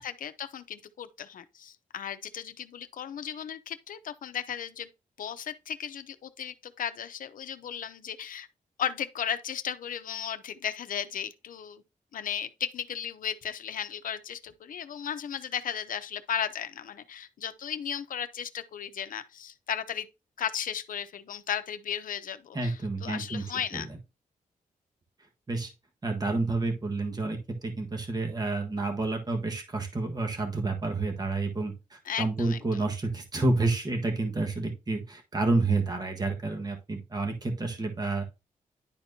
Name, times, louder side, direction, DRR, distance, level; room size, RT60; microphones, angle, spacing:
voice 1, 0.0-4.9 5.2-8.5 8.8-11.8 12.1-20.1 20.4-23.9 32.0-32.8, left 9 dB, 80° left, 0.7 m, -35 dB
voice 2, 22.5-23.4 23.7-23.8 25.5-25.7 26.0-38.2, right 3 dB, 30° right, 1.4 m, -29 dB
10.5 x 4.4 x 2.7 m
wide cardioid pair, 135°, 14 cm